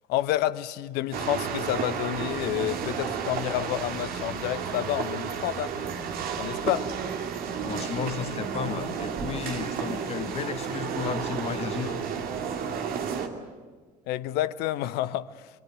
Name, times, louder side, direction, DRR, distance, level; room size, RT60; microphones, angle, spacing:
voice 1, 0.1-5.7 6.4-6.9 14.1-15.5, left 14 dB, 50° left, 0.9 m, -29 dB
sound 1, 1.1-13.3, right 7 dB, 45° right, 2.5 m, -32 dB
voice 2, 7.6-12.0, left 7 dB, 30° left, 1.1 m, -33 dB
26.5 x 23.0 x 8.1 m
figure-of-eight pair, 65°, 21 cm